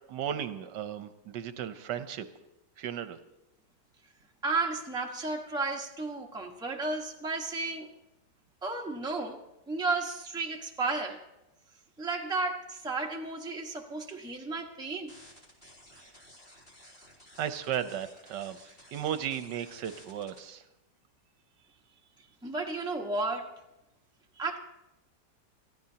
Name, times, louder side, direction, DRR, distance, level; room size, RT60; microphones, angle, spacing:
voice 1, 0.1-2.3 2.8-3.2 17.4-18.6 18.9-20.6, right 9 dB, 75° right, 10 dB, 1.3 m, -35 dB
voice 2, 4.4-7.9 8.6-9.4 9.7-11.2 12.0-15.1 22.4-23.5 24.4-24.6, right 3 dB, 5° right, 1 dB, 1.1 m, -33 dB
sound 1, 15.1-20.4, equal, 30° left, 3.2 m, -54 dB
28.5 x 14.5 x 2.8 m, 0.92 s
omnidirectional pair, 1.9 m